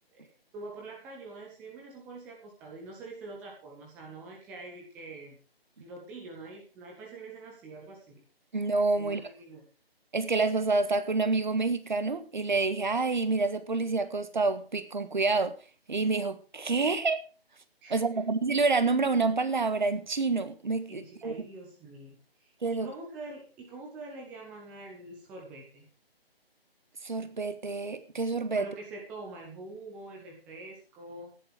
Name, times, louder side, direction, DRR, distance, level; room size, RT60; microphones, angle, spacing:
voice 1, 0.5-5.4 5.8-8.2 9.0-9.6 17.8-18.2 20.9-25.9 28.5-31.3, right 2 dB, 5° right, 0.9 m, -45 dB
voice 2, 8.5-9.3 10.1-15.6 15.9-17.2 17.9-21.3 22.6-22.9 27.0-28.7, right 3 dB, 50° right, 1.6 m, -28 dB
14.5 x 10.5 x 4.9 m
figure-of-eight pair, 150°, 31 cm